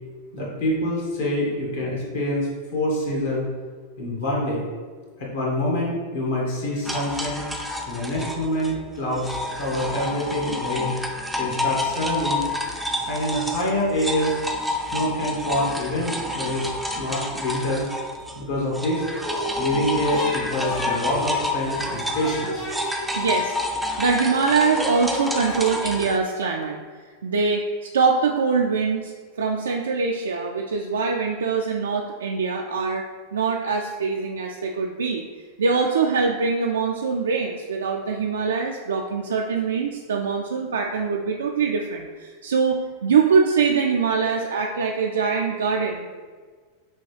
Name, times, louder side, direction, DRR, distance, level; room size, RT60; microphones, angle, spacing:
voice 1, 0.3-3.5 4.0-4.6 5.2-7.4 7.9-10.9 11.3-12.4 13.1-14.4 14.9-16.7 16.9-17.8 18.3-19.0 19.6-22.5, left 1 dB, 60° left, -4 dB, 1.4 m, -26 dB
sound 1, 6.8-18.4 18.7-26.2, left 2 dB, ahead, 0.4 m, -29 dB
sound 2, 19.0-19.8 20.1-24.0 24.3-26.6, left 1 dB, 35° left, 1.0 m, -34 dB
voice 2, 23.2-26.8 27.0-29.1 29.4-35.2 35.6-46.1, right 5 dB, 65° right, 0 dB, 0.3 m, -23 dB
6.2 x 2.3 x 3.2 m, 1.5 s
figure-of-eight pair, 90°, 0 cm